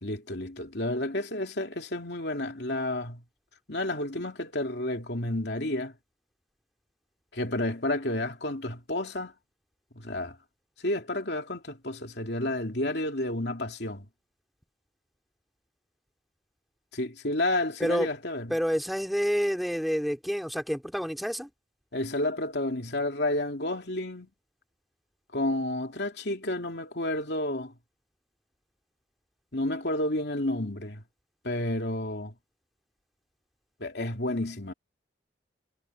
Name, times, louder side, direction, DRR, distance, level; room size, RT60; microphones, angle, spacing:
voice 1, 0.0-3.2 3.7-5.9 7.3-9.3 9.9-10.4 10.8-14.0 16.9-18.6 21.9-24.3 25.3-27.7 29.5-31.0 31.4-32.3 33.8-34.7, left 1 dB, 70° left, 3.0 m, -31 dB
voice 2, 18.5-21.5, equal, ahead, 2.3 m, -28 dB
head